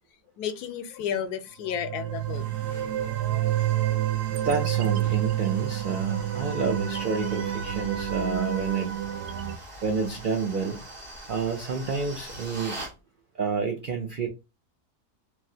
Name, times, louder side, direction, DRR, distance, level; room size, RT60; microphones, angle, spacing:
voice 1, 0.4-2.5, left 8 dB, 85° left, 1.1 m, -32 dB
sound 1, 1.7-9.6, right 13 dB, 85° right, 1.1 m, -28 dB
sound 2, 2.1-13.0, right 1 dB, 25° right, 0.8 m, -44 dB
voice 2, 4.3-9.0 9.8-10.8 11.3-12.8 13.4-14.3, right 5 dB, 70° right, 0.4 m, -29 dB
3.2 x 2.4 x 2.6 m
omnidirectional pair, 1.6 m